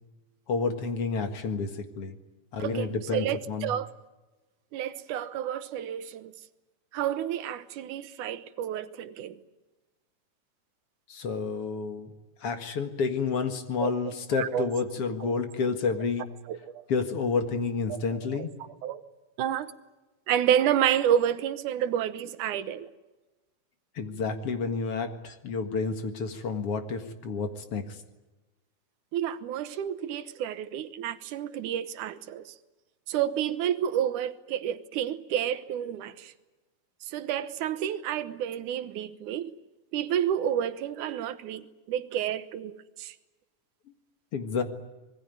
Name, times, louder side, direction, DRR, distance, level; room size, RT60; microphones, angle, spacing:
voice 1, 0.5-2.2 2.5-3.7 11.1-12.1 12.4-16.3 16.9-18.5 24.0-28.0 44.3-44.6, left 4 dB, 55° left, 2.6 m, -30 dB
voice 2, 2.6-3.9 4.7-6.3 6.9-9.4 13.8-13.9 14.4-14.7 15.2-15.4 16.5-16.8 17.9-18.0 18.3-18.5 18.8-19.0 19.4-19.7 20.3-22.9 29.1-32.5 33.1-36.3 37.1-39.5 39.9-43.1, right 10 dB, 90° right, 2.6 m, -30 dB
26.0 x 20.5 x 9.3 m
omnidirectional pair, 3.4 m